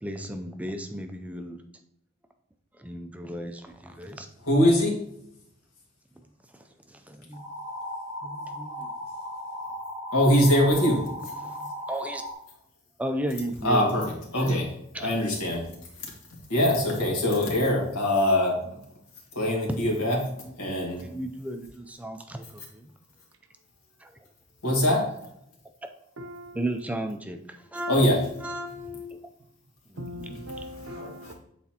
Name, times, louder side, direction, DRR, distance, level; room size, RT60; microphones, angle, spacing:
voice 1, 0.0-1.6 2.7-4.3 6.2-6.3 6.5-7.5 8.2-8.9 11.0-12.2 13.0-14.0 14.3-14.6 14.9-15.1 21.0-22.9 24.0-24.3 26.5-29.3 29.9-30.0, right 1 dB, 5° right, 0.4 m, -35 dB
voice 2, 4.5-4.9 10.1-11.0 13.6-14.0 14.3-14.6 15.0-15.6 16.5-18.5 19.4-20.2 20.6-21.0 24.6-25.0 27.9-28.2, left 1 dB, 90° left, 1.9 m, -22 dB
sound 1, 7.3-12.3, left 1 dB, 70° left, 2.2 m, -37 dB
voice 3, 26.2-26.6 30.0-31.3, equal, 65° right, 0.7 m, -40 dB
8.1 x 4.2 x 2.9 m
head